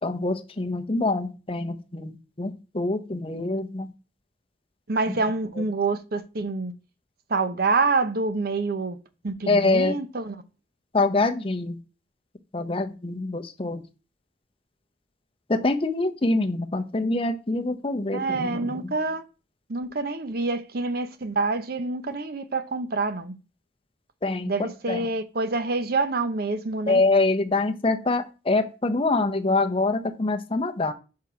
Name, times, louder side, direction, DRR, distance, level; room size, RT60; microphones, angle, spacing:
voice 1, 0.0-3.9 5.6-5.7 9.5-10.0 10.9-11.8 12.5-13.8 15.5-18.8 24.2-25.1 26.9-30.9, left 2 dB, 30° left, 0.7 m, -25 dB
voice 2, 4.9-6.7 7.3-9.0 9.2-10.3 18.1-19.2 19.7-23.4 24.5-27.0, right 3 dB, 60° right, 0.7 m, -27 dB
5.9 x 4.8 x 5.7 m
head